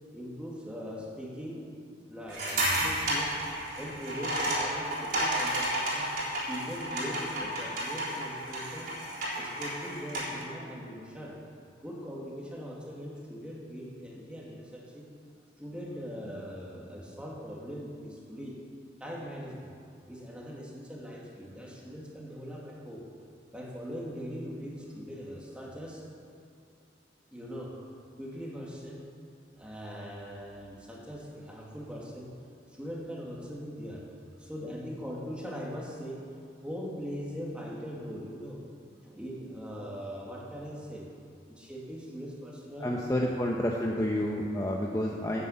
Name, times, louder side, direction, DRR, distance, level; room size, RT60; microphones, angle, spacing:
voice 1, 0.1-1.8 2.1-3.4 3.8-6.1 6.4-8.9 9.3-11.4 11.8-15.1 15.6-18.6 19.0-19.7 20.1-23.1 23.5-26.1 27.3-27.9 28.2-29.1 29.6-32.3 32.7-34.1 34.4-36.3 36.6-38.6 39.0-41.1 41.5-43.4, equal, 5° right, -3 dB, 2.0 m, -41 dB
sound 1, 2.3-10.4, right 1 dB, 50° right, 3.7 m, -32 dB
voice 2, 42.8-45.5, left 1 dB, 15° left, -1 dB, 0.7 m, -29 dB
9.7 x 9.5 x 7.9 m, 2.5 s
head